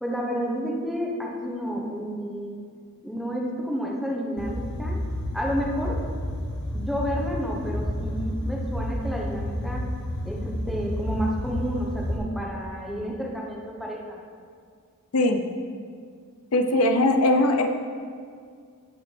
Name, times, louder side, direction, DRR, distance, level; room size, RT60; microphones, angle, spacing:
voice 1, 0.0-2.5 3.0-5.0 5.3-6.0 6.7-9.8 10.2-14.2, equal, ahead, -2 dB, 1.1 m, -30 dB
sound 1, 4.4-12.2, left 1 dB, 60° left, 1.2 m, -30 dB
voice 2, 16.5-17.7, left 1 dB, 85° left, 5 dB, 0.7 m, -20 dB
16.5 x 5.9 x 3.4 m, 2.1 s
head